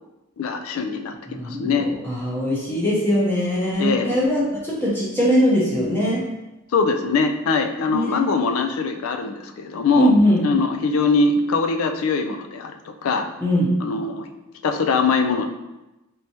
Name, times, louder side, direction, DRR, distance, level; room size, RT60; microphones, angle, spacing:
voice 1, 0.4-1.9 3.8-4.2 6.7-10.1 10.4-13.3 13.8-14.3 14.6-15.5, left 4 dB, 80° left, 6 dB, 0.4 m, -22 dB
voice 2, 1.3-6.2 7.9-8.3 10.0-10.4 13.4-13.7, equal, 10° left, -6 dB, 0.6 m, -21 dB
3.3 x 3.0 x 2.8 m, 1.0 s
head